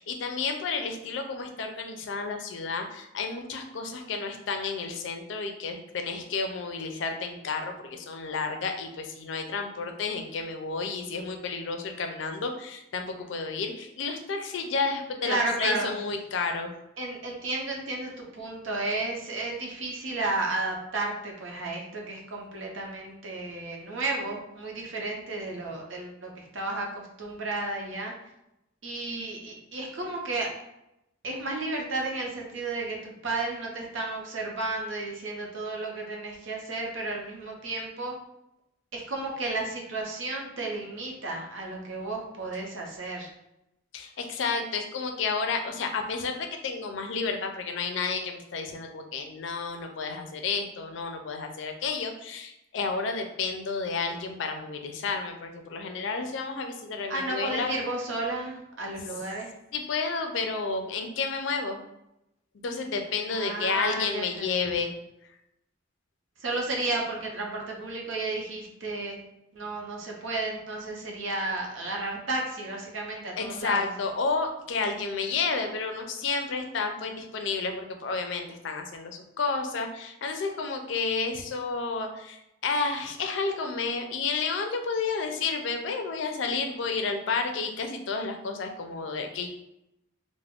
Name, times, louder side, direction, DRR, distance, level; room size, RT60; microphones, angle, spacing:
voice 1, 0.0-16.7 43.9-57.8 59.7-61.8 62.6-64.9 73.4-89.5, left 4 dB, 65° left, 5 dB, 0.4 m, -31 dB
voice 2, 15.2-15.9 17.0-28.1 28.8-30.5 31.2-38.1 38.9-43.3 57.1-59.5 63.3-64.6 66.4-69.2 69.5-73.9, right 2 dB, 75° right, 0 dB, 0.7 m, -33 dB
2.3 x 2.1 x 3.4 m, 0.85 s
head